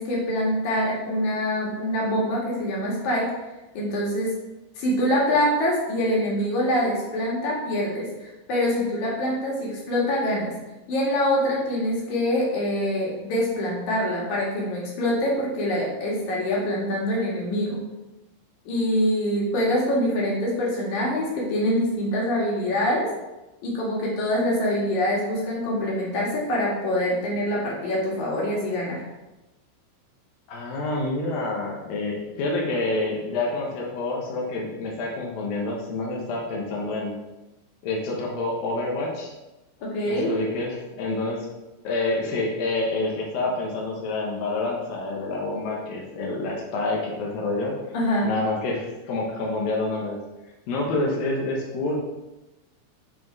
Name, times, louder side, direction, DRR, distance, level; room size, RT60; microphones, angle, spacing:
voice 1, 0.0-3.3 3.7-4.3 4.8-10.5 10.9-17.8 18.7-23.0 23.6-29.0 39.8-40.3 47.9-48.3, left 1 dB, 50° left, -4 dB, 2.6 m, -25 dB
voice 2, 30.5-37.1 37.8-39.3 40.1-41.5 41.8-47.8 48.2-50.2 50.7-52.0, left 2 dB, 90° left, -2 dB, 2.0 m, -28 dB
9.1 x 4.8 x 4.6 m, 1.0 s
omnidirectional pair, 5.9 m